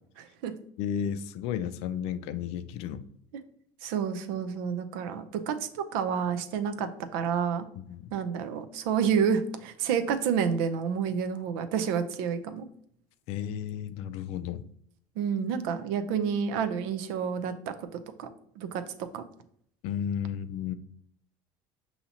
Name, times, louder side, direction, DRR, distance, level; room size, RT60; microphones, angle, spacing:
voice 1, 0.2-0.5 3.8-7.7 8.1-12.6 15.2-17.9 18.2-18.3 18.6-19.2, right 7 dB, 80° right, 0.5 m, -29 dB
voice 2, 0.8-3.1 7.8-8.1 13.3-14.6 19.8-20.7, left 9 dB, 65° left, 0.4 m, -33 dB
5.7 x 2.8 x 2.8 m
supercardioid pair, 110°, 12 cm